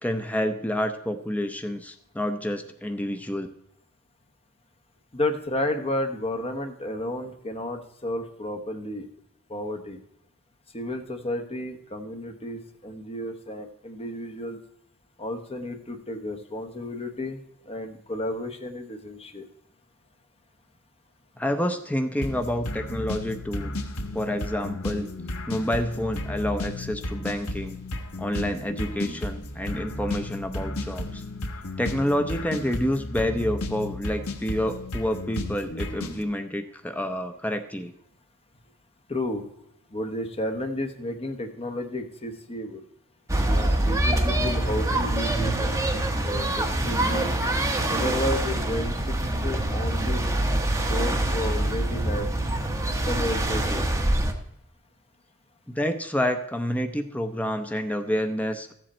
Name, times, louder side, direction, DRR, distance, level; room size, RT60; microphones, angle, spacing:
voice 1, 0.0-3.5 21.4-23.7 24.1-25.1 25.5-27.8 28.2-31.2 31.8-37.9 55.7-58.7, equal, 5° left, 6 dB, 0.6 m, -28 dB
voice 2, 5.1-9.1 9.5-10.0 10.7-14.6 15.2-19.5 39.1-39.4 39.9-42.8 43.5-45.7 46.2-47.3 47.9-50.2 50.9-52.3 53.1-53.8, left 1 dB, 30° left, 5 dB, 1.1 m, -32 dB
sound 1, 22.2-36.2, left 1 dB, 70° left, 1.2 m, -33 dB
sound 2, 43.3-54.3, right 1 dB, 15° right, 1.1 m, -25 dB
14.0 x 7.7 x 4.3 m, 0.76 s
head